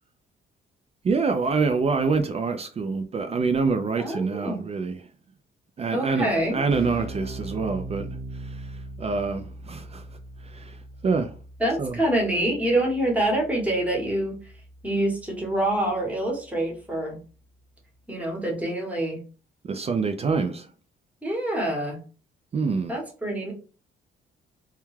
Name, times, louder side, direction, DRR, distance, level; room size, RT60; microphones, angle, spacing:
voice 1, 1.0-5.0 5.8-8.1 8.3-10.0 10.4-10.8 11.0-11.3 11.8-12.0 19.6-20.7 22.5-22.9, right 4 dB, 30° right, 0.3 m, -26 dB
voice 2, 4.0-4.6 5.9-6.6 11.6-14.3 14.8-17.2 18.1-19.2 21.2-22.0 22.9-23.5, right 1 dB, 5° right, 1.0 m, -26 dB
Keyboard (musical), 6.7-17.0, right 2 dB, 50° right, 0.7 m, -41 dB
2.3 x 2.2 x 3.1 m
cardioid pair, 90°, 20 cm